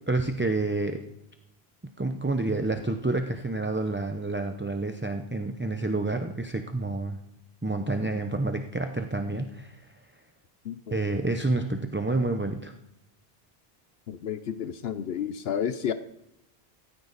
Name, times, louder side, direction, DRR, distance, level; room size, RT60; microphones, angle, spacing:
voice 1, 0.1-1.0 2.0-7.2 7.6-9.8 10.9-12.7, right 2 dB, 15° right, 6 dB, 0.6 m, -29 dB
voice 2, 10.6-11.0 14.1-15.9, left 8 dB, 75° left, 11 dB, 0.9 m, -31 dB
17.0 x 14.5 x 4.1 m, 0.85 s
omnidirectional pair, 1.0 m